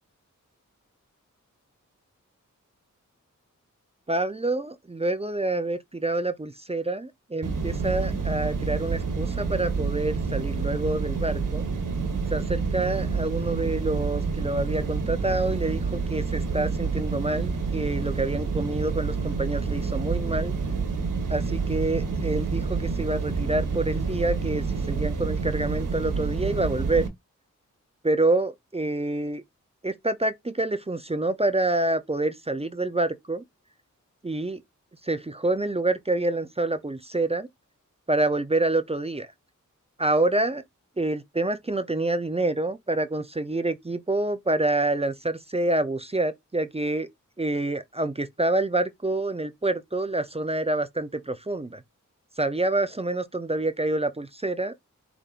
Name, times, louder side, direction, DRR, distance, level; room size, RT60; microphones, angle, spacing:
voice 1, 4.1-11.7 12.3-20.5 21.3-27.0 28.0-29.4 29.8-33.4 34.2-34.6 35.0-37.5 38.1-39.3 40.0-40.6 41.0-47.1 47.4-51.8 52.4-54.7, right 2 dB, 20° right, 0.6 m, -27 dB
sound 1, 7.4-27.1, right 5 dB, 80° right, 1.4 m, -28 dB
5.5 x 3.5 x 2.5 m
cardioid pair, 55°, 32 cm